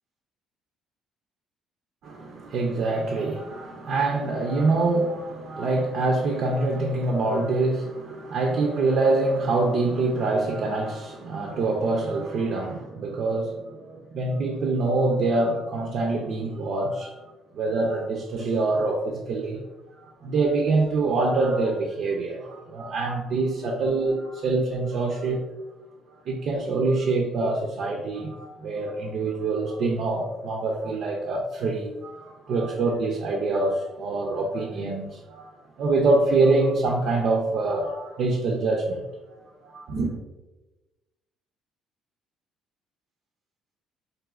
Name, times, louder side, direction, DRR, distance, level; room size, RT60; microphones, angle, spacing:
voice 1, 2.0-17.1 17.5-19.6 20.0-25.4 26.2-39.1 39.6-40.1, right 3 dB, 60° right, 1 dB, 0.5 m, -25 dB
4.9 x 2.6 x 2.4 m, 1.1 s
cardioid pair, 115°, 0 cm